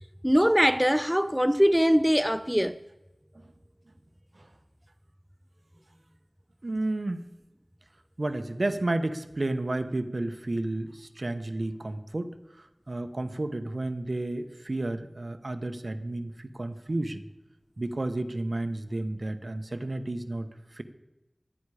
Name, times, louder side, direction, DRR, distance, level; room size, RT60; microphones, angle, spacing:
voice 1, 0.2-2.8, equal, 5° right, 0.4 m, -22 dB
voice 2, 6.6-7.2 8.2-17.3 17.8-20.8, right 2 dB, 60° right, 1.1 m, -32 dB
24.0 x 9.9 x 5.0 m
wide cardioid pair, 45°, 0 cm